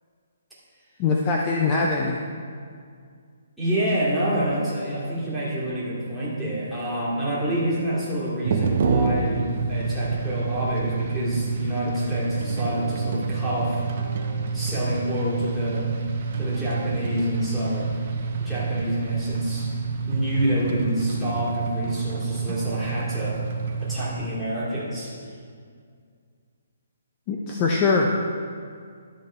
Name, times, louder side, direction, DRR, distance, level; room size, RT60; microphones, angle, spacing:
voice 1, 1.0-2.2 27.3-28.2, left 4 dB, 25° left, 0 dB, 0.6 m, -22 dB
voice 2, 3.6-13.8 14.5-15.9 16.3-17.9 18.4-19.7 20.1-23.4 23.8-25.1, equal, ahead, -12 dB, 2.4 m, -27 dB
sound 1, 8.4-24.1, right 4 dB, 45° right, 0.9 m, -27 dB
12.0 x 5.4 x 4.4 m, 2.2 s
hypercardioid pair, 160°, 0 cm